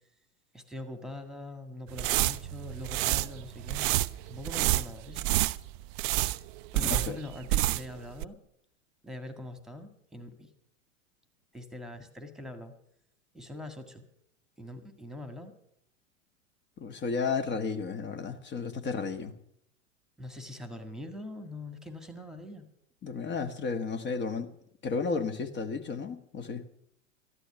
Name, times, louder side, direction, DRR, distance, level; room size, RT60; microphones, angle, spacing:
voice 1, 0.5-3.9 4.2-5.3 6.7-8.4 9.0-10.5 11.5-12.7 13.3-14.0 14.6-15.5 20.2-22.6, left 1 dB, ahead, 8 dB, 1.7 m, -43 dB
sound 1, 1.9-8.0 8.2-8.3, right 17 dB, 45° right, 0.5 m, -29 dB
voice 2, 6.8-7.2 16.8-19.3 23.0-24.5 24.8-26.6, left 5 dB, 30° left, 8 dB, 1.4 m, -33 dB
14.0 x 11.5 x 6.8 m, 0.73 s
hypercardioid pair, 95°, 39 cm